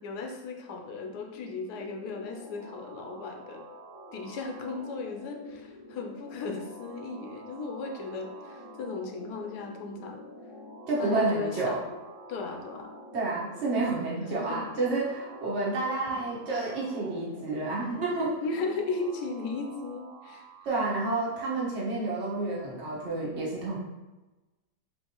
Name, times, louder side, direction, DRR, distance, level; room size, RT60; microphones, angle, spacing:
voice 1, 0.0-3.6 4.1-10.2 11.0-11.9 12.3-12.9 14.4-14.6 15.8-16.0 18.4-20.5, left 4 dB, 85° left, 3 dB, 1.2 m, -36 dB
sound 1, 0.9-20.8, equal, 5° right, 1.2 m, -47 dB
voice 2, 10.9-11.8 13.1-18.4 20.6-23.8, right 3 dB, 45° right, -6 dB, 1.4 m, -30 dB
4.5 x 3.2 x 2.9 m, 1.1 s
omnidirectional pair, 1.7 m